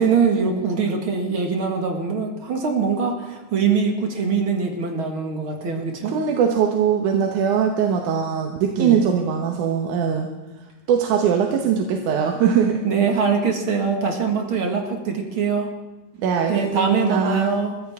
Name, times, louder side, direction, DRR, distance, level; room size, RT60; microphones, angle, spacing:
voice 1, 0.0-6.1 8.8-9.0 12.8-15.7 16.5-17.7, right 5 dB, 45° right, 2 dB, 2.1 m, -22 dB
voice 2, 6.0-10.3 10.9-12.8 16.2-17.5, right 7 dB, 70° right, 3 dB, 2.4 m, -21 dB
22.0 x 15.0 x 3.6 m, 1.1 s
omnidirectional pair, 4.0 m